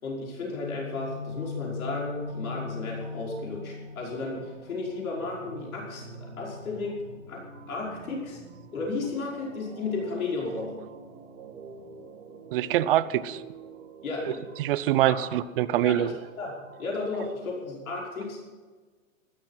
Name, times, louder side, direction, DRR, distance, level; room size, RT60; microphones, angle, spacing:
voice 1, 0.0-6.1 6.4-7.0 7.3-7.4 7.7-8.4 8.7-10.7 14.0-14.4 15.1-15.2 15.8-16.0 16.4-16.5 16.8-18.4, left 3 dB, 85° left, -3 dB, 5.7 m, -33 dB
Guitar, 0.5-8.4, left 5 dB, 40° left, 3.4 m, -40 dB
sound 1, 0.9-16.9, right 5 dB, 65° right, 2.9 m, -49 dB
voice 2, 12.5-13.4 14.6-16.1, right 13 dB, 40° right, 15 dB, 0.7 m, -24 dB
15.5 x 13.5 x 5.9 m, 1.4 s
hypercardioid pair, 150°, 41 cm